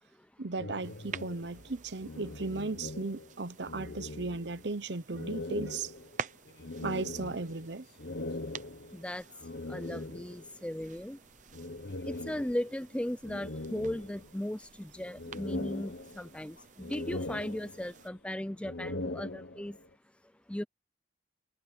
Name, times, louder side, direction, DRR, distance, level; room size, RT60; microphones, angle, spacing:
voice 1, 0.4-5.9 6.8-7.8, right 3 dB, 75° right, 0.9 m, -36 dB
sound 1, 0.5-3.4 3.6-4.7 5.1-10.6 11.5-12.8 13.2-14.6 15.0-16.5 16.8-18.1 18.5-19.9, left 2 dB, 90° left, 1.4 m, -41 dB
sound 2, 0.8-18.1, right 6 dB, 45° right, 0.8 m, -50 dB
sound 3, 4.5-18.3, left 2 dB, 70° left, 6.7 m, -65 dB
voice 2, 8.9-9.2 9.7-11.2 12.1-19.8 20.5-20.6, left 1 dB, 5° left, 0.4 m, -37 dB
head